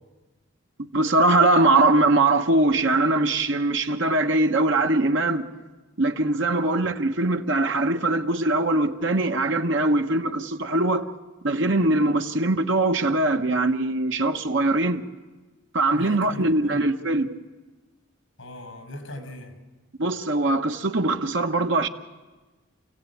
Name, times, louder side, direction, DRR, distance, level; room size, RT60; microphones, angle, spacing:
voice 1, 0.8-5.5 6.0-11.1 11.4-15.0 15.7-17.4 20.0-21.9, right 2 dB, 65° right, 1.2 m, -22 dB
voice 2, 15.9-16.8 18.4-19.6, left 1 dB, 70° left, 6.2 m, -40 dB
28.5 x 16.5 x 8.7 m
head